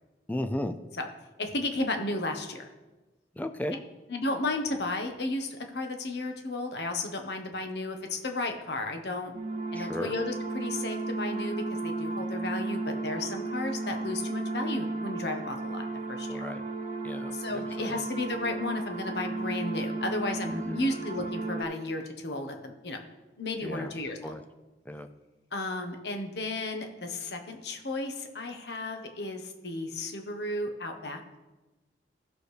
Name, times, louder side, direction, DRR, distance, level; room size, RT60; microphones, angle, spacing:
voice 1, 0.3-0.7 3.4-3.8 9.7-10.1 16.3-16.6 17.0-18.0 20.5-20.9 23.6-23.9 24.2-24.4 24.9-25.1, left 1 dB, 10° left, 8 dB, 0.4 m, -35 dB
voice 2, 1.4-2.7 4.1-9.3 9.7-16.4 17.3-23.0 23.4-24.3 25.5-31.2, left 2 dB, 70° left, 4 dB, 1.2 m, -34 dB
sound 1, 9.3-21.6, right 2 dB, 40° right, 0.9 m, -34 dB
15.5 x 6.5 x 3.4 m, 1.1 s
head